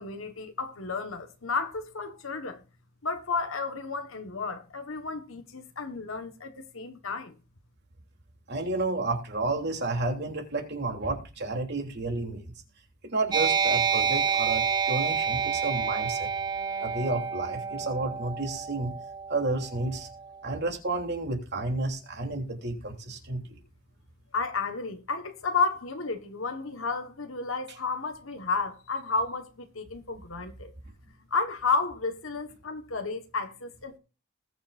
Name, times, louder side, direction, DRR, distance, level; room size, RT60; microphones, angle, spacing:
voice 1, 0.0-2.6 3.0-7.3 24.3-30.7 31.3-34.0, left 4 dB, 70° left, 1.3 m, -32 dB
voice 2, 8.5-12.5 13.0-16.3 16.8-18.9 19.3-20.1 20.4-23.6, right 2 dB, 50° right, 3.1 m, -31 dB
sound 1, 13.3-20.4, right 6 dB, 20° right, 0.8 m, -29 dB
20.5 x 6.8 x 2.5 m
head